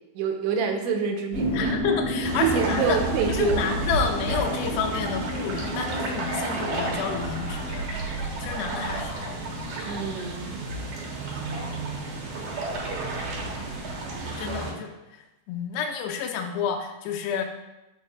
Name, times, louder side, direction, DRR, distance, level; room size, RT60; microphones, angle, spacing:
voice 1, 0.1-1.8 2.4-3.8 9.8-10.6, right 6 dB, 85° right, 3 dB, 3.1 m, -27 dB
sound 1, 1.3-7.9, equal, 25° left, 2.8 m, -32 dB
voice 2, 1.5-3.0 3.3-7.9 8.4-9.4 13.8-14.0 14.4-14.9 15.5-17.4, left 7 dB, 80° left, 2 dB, 2.6 m, -30 dB
sound 2, 2.2-14.7, right 2 dB, 65° right, 2.0 m, -31 dB
9.4 x 7.6 x 2.4 m, 0.97 s
omnidirectional pair, 5.2 m